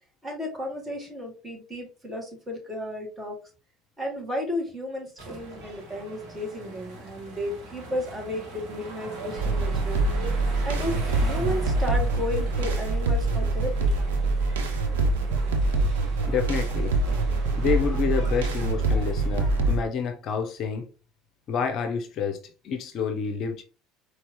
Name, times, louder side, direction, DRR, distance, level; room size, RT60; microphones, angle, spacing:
voice 1, 0.2-3.4 4.0-10.0 10.6-13.9, left 1 dB, 20° right, 2.4 m, -33 dB
sound 1, 5.2-19.8, right 2 dB, 55° right, 1.6 m, -40 dB
sound 2, 9.4-19.8, right 3 dB, 75° right, 0.8 m, -25 dB
voice 2, 16.3-17.0 17.6-20.9 21.5-23.6, left 6 dB, 50° left, 0.6 m, -28 dB
4.5 x 3.3 x 3.0 m
figure-of-eight pair, 65°, 0 cm